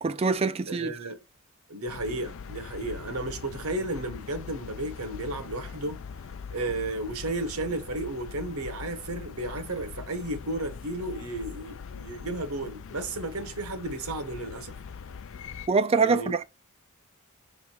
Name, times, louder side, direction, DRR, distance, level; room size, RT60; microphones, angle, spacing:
voice 1, 0.0-0.9 15.7-16.4, right 4 dB, 25° right, 0.3 m, -24 dB
voice 2, 0.7-1.2 1.7-6.0 6.5-14.8 16.0-16.4, right 2 dB, 80° right, 1.3 m, -33 dB
sound 1, 1.9-15.7, left 6 dB, 60° left, 0.4 m, -42 dB
6.3 x 3.6 x 4.5 m
head